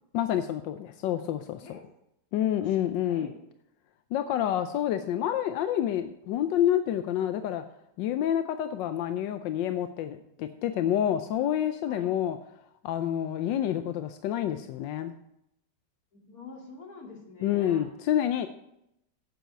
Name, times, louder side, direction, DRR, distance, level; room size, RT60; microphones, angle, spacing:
voice 1, 0.1-1.8 2.3-3.3 4.1-7.6 8.0-12.4 12.8-15.1 17.4-18.5, left 11 dB, 90° left, 9 dB, 1.3 m, -28 dB
voice 2, 16.1-17.9, left 4 dB, 55° left, 1 dB, 2.7 m, -46 dB
9.3 x 7.0 x 9.0 m, 0.81 s
omnidirectional pair, 1.9 m